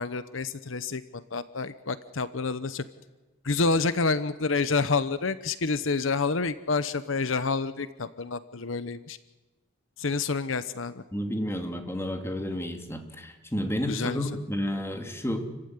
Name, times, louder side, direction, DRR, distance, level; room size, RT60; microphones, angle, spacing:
voice 1, 0.0-2.8 3.4-9.2 10.0-11.0 13.9-14.3, left 4 dB, 75° left, 14 dB, 0.9 m, -28 dB
voice 2, 11.1-15.5, equal, 15° left, 5 dB, 2.7 m, -31 dB
29.5 x 15.5 x 9.7 m, 1.2 s
head